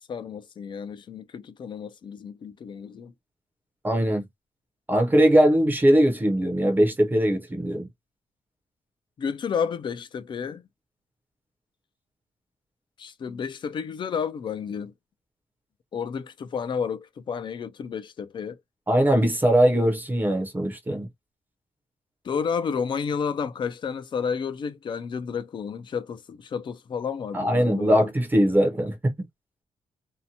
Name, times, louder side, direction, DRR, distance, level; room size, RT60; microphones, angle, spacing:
voice 1, 0.1-3.1 9.2-10.6 13.0-14.9 15.9-18.6 22.2-28.1, left 6 dB, 40° left, 0.4 m, -31 dB
voice 2, 3.8-4.2 4.9-7.9 18.9-21.1 27.3-29.1, equal, 15° right, 0.6 m, -21 dB
2.7 x 2.1 x 2.7 m
wide cardioid pair, 180°, 12 cm